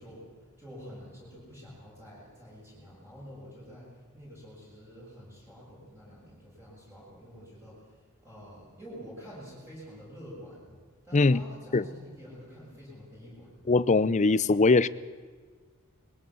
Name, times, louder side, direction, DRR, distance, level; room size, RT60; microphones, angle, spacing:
voice 1, 0.0-10.8 11.0-13.5, equal, 10° right, -7 dB, 7.8 m, -48 dB
voice 2, 13.7-14.9, left 3 dB, 35° left, 17 dB, 0.5 m, -21 dB
22.0 x 16.5 x 7.7 m, 1.5 s
head